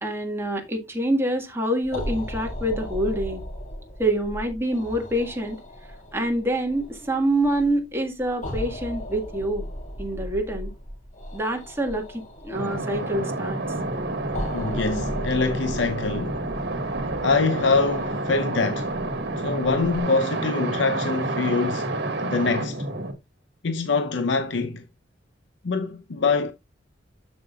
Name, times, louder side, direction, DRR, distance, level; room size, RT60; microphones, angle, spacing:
voice 1, 0.0-3.4 4.0-5.6 6.1-9.7 10.0-10.7 11.3-13.6, right 1 dB, 15° right, 1.6 m, -26 dB
sound 1, 1.8-20.0, equal, 45° left, 2.9 m, -37 dB
sound 2, 12.5-23.1, right 2 dB, 65° right, 1.6 m, -29 dB
voice 2, 14.5-16.4 17.2-18.9 19.4-21.9 22.2-22.8 23.6-24.8 25.6-26.5, left 4 dB, 75° left, 0.7 m, -24 dB
13.0 x 5.3 x 2.3 m
head